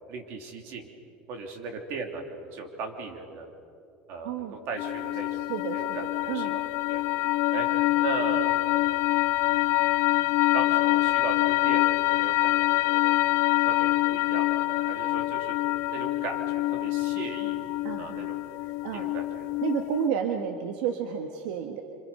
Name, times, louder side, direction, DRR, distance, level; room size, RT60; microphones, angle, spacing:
voice 1, 0.1-0.9 1.3-3.5 4.1-5.4 5.7-6.6 6.9-7.0 7.5-7.7 8.0-8.6 10.5-15.5 15.9-17.5 18.0-18.4 18.9-19.6, right 4 dB, 50° right, 3 dB, 3.3 m, -37 dB
sound 1, 4.8-20.1, left 18 dB, 50° left, 0.5 m, -25 dB
voice 2, 5.3-6.0 6.3-6.6 17.8-18.3 18.6-19.1 19.6-21.8, right 8 dB, 70° right, 4 dB, 1.6 m, -31 dB
27.5 x 26.5 x 5.7 m, 2.5 s
cardioid pair, 160°, 5 cm